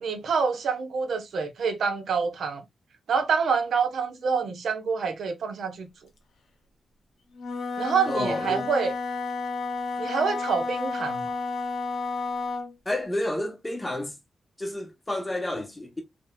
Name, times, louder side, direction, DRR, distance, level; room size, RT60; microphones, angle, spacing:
voice 1, 0.0-2.6 3.1-5.9 7.8-8.9 10.0-11.2, right 5 dB, 75° right, 1.0 m, -26 dB
Wind instrument woodwind instrument, 7.3-12.7, left 4 dB, 80° left, 0.9 m, -31 dB
voice 2, 8.1-8.7 12.9-14.2 14.6-16.0, left 1 dB, 10° left, 0.7 m, -30 dB
3.8 x 3.1 x 2.3 m
wide cardioid pair, 175°, 0 cm